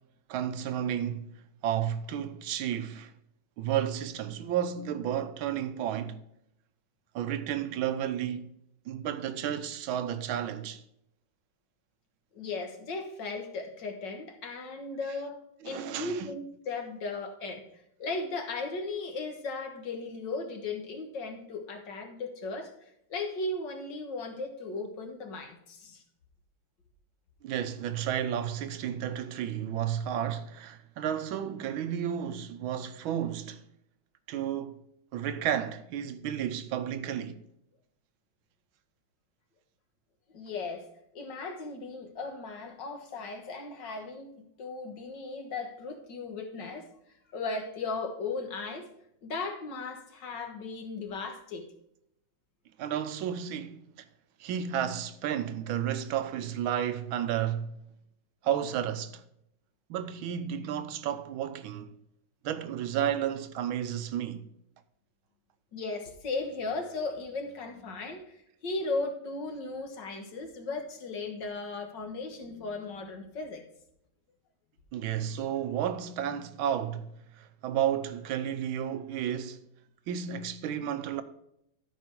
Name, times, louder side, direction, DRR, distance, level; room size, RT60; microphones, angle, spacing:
voice 1, 0.3-1.3 1.6-3.1 3.6-6.2 7.1-8.5 8.9-10.8 15.6-16.3 27.4-33.6 34.3-34.8 35.1-37.4 52.8-53.9 54.4-57.7 58.4-59.2 59.9-61.9 62.4-64.5 74.9-79.6 80.1-81.2, right 9 dB, 85° right, 1.6 m, -32 dB
voice 2, 12.3-17.6 18.0-26.0 40.3-40.9 41.1-46.9 47.3-48.9 49.2-51.7 65.7-73.6, left 3 dB, 60° left, 2.0 m, -36 dB
12.5 x 5.2 x 4.6 m
omnidirectional pair, 2.2 m